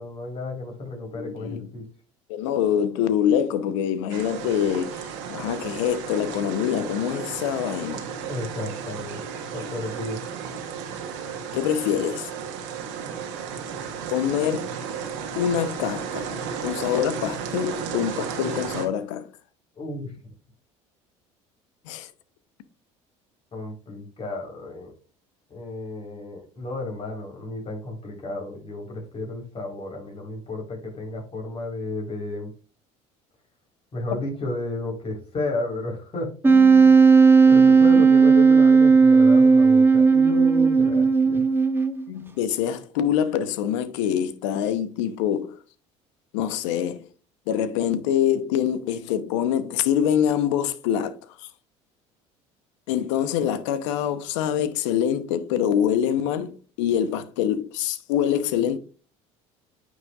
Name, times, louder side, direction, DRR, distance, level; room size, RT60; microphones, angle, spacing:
voice 1, 0.0-1.8 8.3-9.2 9.5-10.2 19.8-20.1 23.5-24.9 25.5-32.5 33.9-37.0 37.5-41.5, left 2 dB, 40° left, 4.0 m, -33 dB
voice 2, 1.1-1.7 2.3-8.1 11.5-12.3 14.1-14.7 15.4-19.3 21.9-22.1 42.1-45.6 46.3-47.1 47.5-51.3 52.9-58.8, left 9 dB, 85° left, 0.9 m, -25 dB
sound 1, 4.1-18.9, right 7 dB, 85° right, 1.6 m, -33 dB
Wind instrument woodwind instrument, 36.4-42.1, right 5 dB, 15° right, 1.1 m, -15 dB
9.1 x 6.3 x 2.4 m
supercardioid pair, 80°, 15 cm